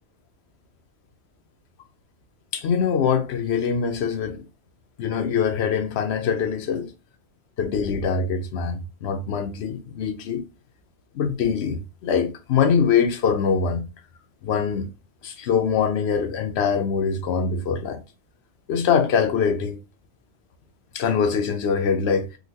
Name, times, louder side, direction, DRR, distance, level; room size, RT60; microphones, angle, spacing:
voice 1, 2.5-4.4 5.0-6.9 7.6-10.4 11.1-13.8 14.4-14.9 15.2-18.0 18.7-19.8 20.9-22.3, left 6 dB, 70° left, 0.9 m, -23 dB
3.8 x 2.3 x 2.7 m
omnidirectional pair, 1.1 m